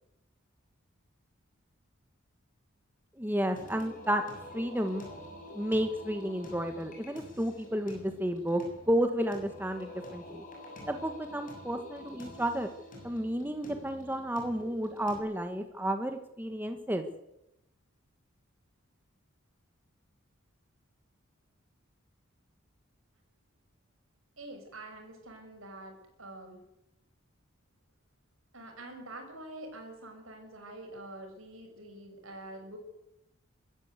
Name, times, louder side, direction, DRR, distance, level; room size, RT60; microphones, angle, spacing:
voice 1, 3.2-4.2 4.5-5.0 5.5-10.4 10.9-12.7 13.0-17.1, equal, 10° right, 6 dB, 1.3 m, -32 dB
Singing, 3.6-15.2, left 1 dB, 40° left, 7.0 m, -48 dB
voice 2, 24.4-26.6 28.5-32.8, right 1 dB, 75° right, 4 dB, 6.8 m, -46 dB
23.0 x 14.5 x 8.1 m, 0.87 s
head